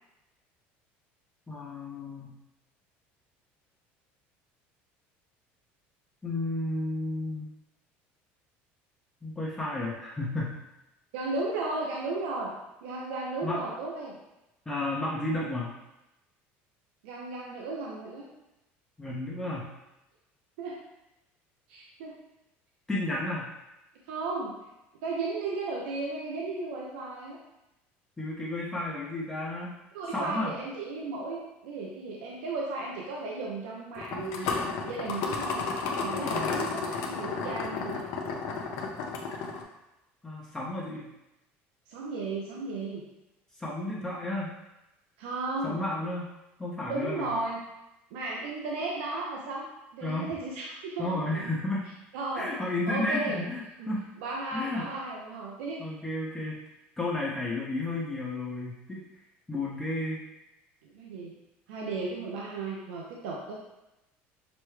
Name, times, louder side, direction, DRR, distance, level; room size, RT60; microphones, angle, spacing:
voice 1, 1.5-2.3 6.2-7.5 9.2-10.6 13.4-13.7 14.7-15.7 19.0-19.7 22.9-23.5 28.2-29.7 30.1-30.5 36.3-36.5 40.2-41.1 43.6-44.5 45.6-46.3 46.6-47.3 50.0-50.3 51.0-51.9 52.4-54.1 54.5-54.9 55.8-56.6 57.0-59.0 59.5-60.2, left 2 dB, 10° left, -6 dB, 0.7 m, -32 dB
voice 2, 11.1-12.5 12.8-14.2 17.0-18.3 20.6-20.8 21.7-22.2 24.0-24.5 25.0-27.4 29.9-34.5 34.8-35.7 36.0-38.1 41.9-43.0 45.2-45.8 46.9-47.6 48.1-49.7 49.9-51.5 52.1-52.5 52.9-53.4 53.8-53.9 54.2-55.8 60.9-61.3 61.7-63.6, right 3 dB, 90° right, -2 dB, 0.6 m, -35 dB
sound 1, 34.0-39.6, left 4 dB, 70° left, 0.7 m, -32 dB
6.1 x 2.2 x 3.1 m, 0.95 s
supercardioid pair, 120°, 5 cm